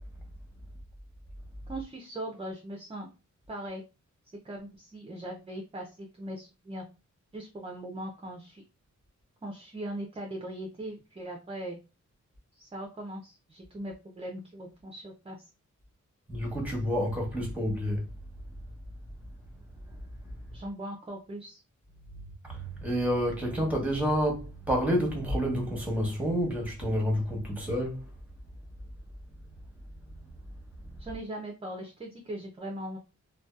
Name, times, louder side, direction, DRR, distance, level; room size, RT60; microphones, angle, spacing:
voice 1, 1.7-3.1 3.5-3.8 4.4-6.8 7.3-8.6 9.4-11.8 12.5-15.4 20.5-21.6 31.0-33.0, right 1 dB, 20° right, 0.4 m, -39 dB
voice 2, 16.3-18.0 19.9-20.0 20.2-20.6 22.4-28.0, equal, 5° right, 0.9 m, -29 dB
2.6 x 2.2 x 2.3 m
wide cardioid pair, 120°, 31 cm